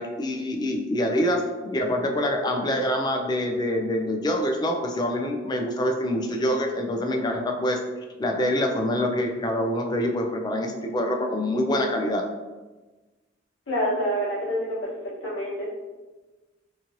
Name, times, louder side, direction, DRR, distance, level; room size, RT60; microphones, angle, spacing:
voice 1, 0.0-7.8 8.2-12.2, left 1 dB, 20° left, 3 dB, 0.3 m, -25 dB
voice 2, 13.7-14.9 15.2-15.7, equal, 85° left, -7 dB, 1.1 m, -27 dB
2.9 x 2.5 x 2.6 m, 1.2 s
head